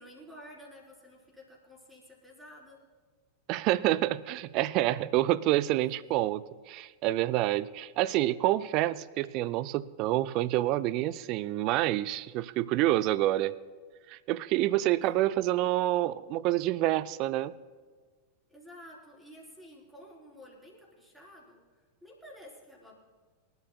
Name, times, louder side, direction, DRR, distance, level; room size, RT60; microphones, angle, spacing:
voice 1, 0.0-2.8 6.0-6.1 15.0-15.5 18.5-21.6 22.0-23.0, equal, 5° right, -2 dB, 4.0 m, -51 dB
voice 2, 3.5-13.6 14.1-17.5, right 15 dB, 40° right, 18 dB, 0.4 m, -28 dB
26.0 x 12.0 x 2.3 m, 1.5 s
figure-of-eight pair, 90°, 0 cm